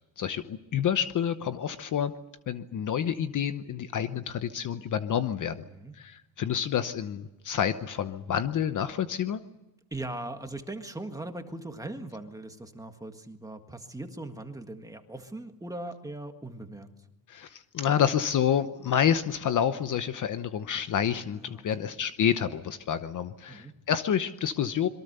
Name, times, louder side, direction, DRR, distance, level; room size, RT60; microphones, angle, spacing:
voice 1, 0.2-2.1 2.5-5.6 5.9-9.4 17.3-24.9, left 9 dB, 40° left, 11 dB, 0.9 m, -28 dB
voice 2, 5.4-5.9 9.9-16.9 21.4-21.9 23.5-23.7, right 2 dB, 5° right, 6 dB, 1.7 m, -40 dB
27.0 x 23.0 x 6.8 m, 0.99 s
cardioid pair, 165°, 48 cm